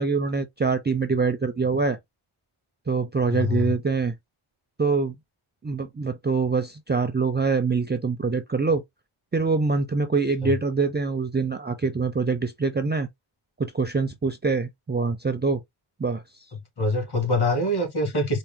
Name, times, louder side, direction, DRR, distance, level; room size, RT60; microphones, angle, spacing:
voice 1, 0.0-2.0 2.9-4.2 4.8-5.1 5.6-8.8 9.3-13.1 13.6-15.6 16.0-16.2, right 4 dB, 20° right, 0.4 m, -24 dB
voice 2, 3.3-3.7 10.4-10.5 16.8-18.4, left 1 dB, 50° left, 2.0 m, -24 dB
4.4 x 2.1 x 3.6 m
wide cardioid pair, 110°, 49 cm